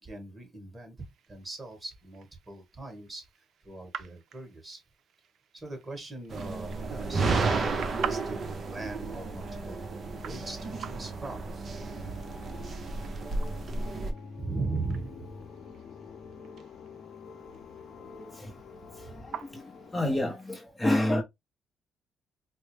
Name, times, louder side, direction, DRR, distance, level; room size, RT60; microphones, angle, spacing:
voice 1, 0.0-3.3 3.6-4.8 5.5-9.8 10.2-11.4 14.4-15.3 19.0-19.3, right 3 dB, 25° right, 1.7 m, -39 dB
sound 1, 1.0-20.5, right 8 dB, 70° right, 0.5 m, -47 dB
sound 2, 6.3-14.1, right 3 dB, 45° right, 0.8 m, -32 dB
sound 3, 7.7-20.2, left 5 dB, 55° left, 0.7 m, -49 dB
voice 2, 18.2-18.5 18.9-21.2, left 1 dB, 15° left, 0.7 m, -30 dB
4.6 x 2.1 x 3.2 m
cardioid pair, 90°, 0 cm